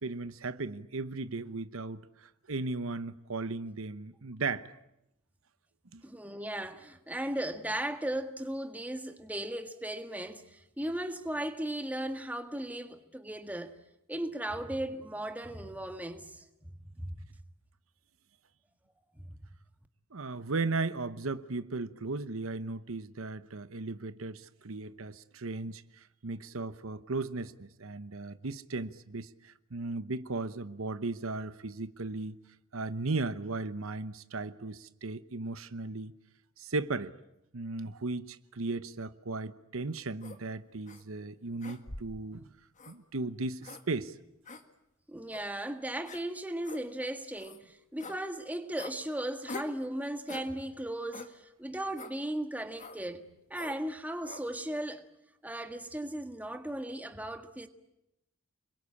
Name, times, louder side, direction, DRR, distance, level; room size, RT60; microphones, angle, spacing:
voice 1, 0.0-4.7 5.9-6.0 20.1-32.4 32.7-36.1 36.6-37.1 37.5-42.5 42.9-44.1, right 3 dB, 75° right, 1.0 m, -36 dB
voice 2, 6.0-13.7 14.1-17.1 19.3-19.4 45.1-55.0 55.4-57.7, right 1 dB, 10° right, 1.6 m, -37 dB
sound 1, 40.2-40.4 40.9-41.0 41.6-42.2 42.8-43.0 43.6-43.8 44.5-44.6 45.3-45.4 46.1-46.2 46.6-46.8 47.4-47.6 48.0-48.2 48.8-49.0 49.5-49.8 50.3-50.5 51.1-51.3 52.0-52.2 52.8-53.0 53.5-53.8 54.2-54.4, left 3 dB, 35° left, 1.8 m, -44 dB
29.5 x 22.0 x 8.6 m
head